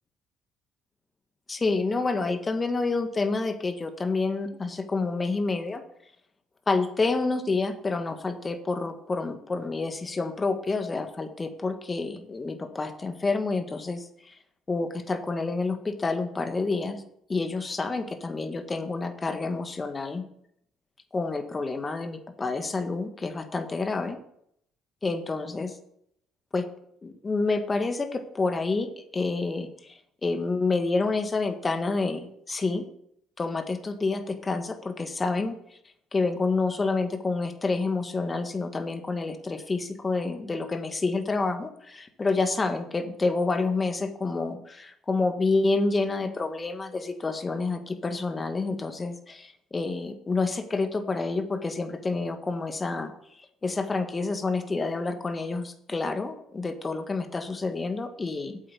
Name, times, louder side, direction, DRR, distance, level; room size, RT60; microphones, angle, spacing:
voice 1, 1.5-5.8 6.7-14.4 14.7-17.0 17.3-20.2 21.1-24.2 25.0-25.7 26.5-26.7 27.0-32.8 33.4-35.8 36.1-53.1 53.6-58.6, left 3 dB, 30° left, 8 dB, 1.7 m, -28 dB
8.5 x 8.1 x 7.0 m, 0.73 s
hypercardioid pair, 50°, 0 cm